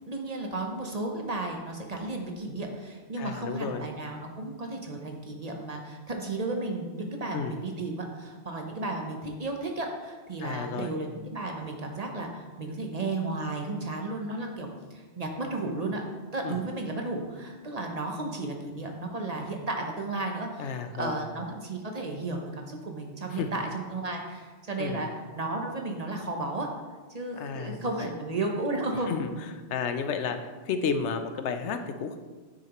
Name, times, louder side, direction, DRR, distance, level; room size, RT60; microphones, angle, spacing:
voice 1, 0.0-16.0 16.3-25.1 25.4-26.7 27.1-29.1, right 2 dB, 40° right, 2 dB, 0.8 m, -33 dB
voice 2, 3.2-3.9 7.3-7.5 10.4-11.0 16.4-16.6 20.6-21.2 23.3-23.6 24.8-25.0 27.4-28.1 29.1-29.3 29.7-30.4 30.6-32.2, left 6 dB, 85° left, 8 dB, 0.9 m, -32 dB
8.9 x 6.5 x 3.0 m, 1.3 s
omnidirectional pair, 1.2 m